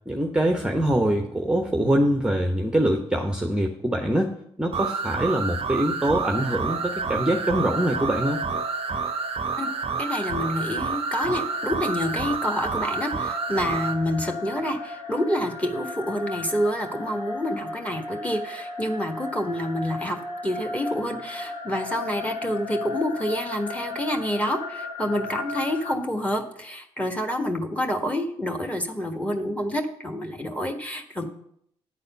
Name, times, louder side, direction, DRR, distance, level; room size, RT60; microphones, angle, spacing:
voice 1, 0.1-8.4, right 1 dB, 5° right, 2 dB, 0.9 m, -24 dB
sound 1, 4.7-14.0, right 5 dB, 40° right, 0.7 m, -29 dB
sound 2, 6.3-25.9, left 3 dB, 35° left, 2.4 m, -36 dB
voice 2, 10.0-31.2, equal, 10° left, 4 dB, 1.5 m, -28 dB
8.9 x 4.1 x 6.7 m, 0.71 s
figure-of-eight pair, 40°, 15 cm